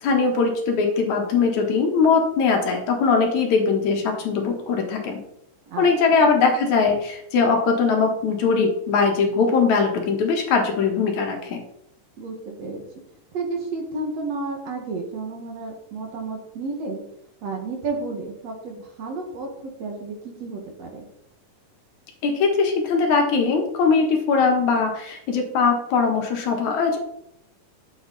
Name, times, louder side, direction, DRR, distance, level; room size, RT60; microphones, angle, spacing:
voice 1, 0.0-5.2 5.8-11.6 22.2-27.0, left 4 dB, 65° left, 2 dB, 2.7 m, -21 dB
voice 2, 12.2-12.8 13.3-17.0 17.4-21.0, right 3 dB, 55° right, 1 dB, 2.6 m, -31 dB
11.0 x 7.3 x 4.0 m, 0.76 s
omnidirectional pair, 3.7 m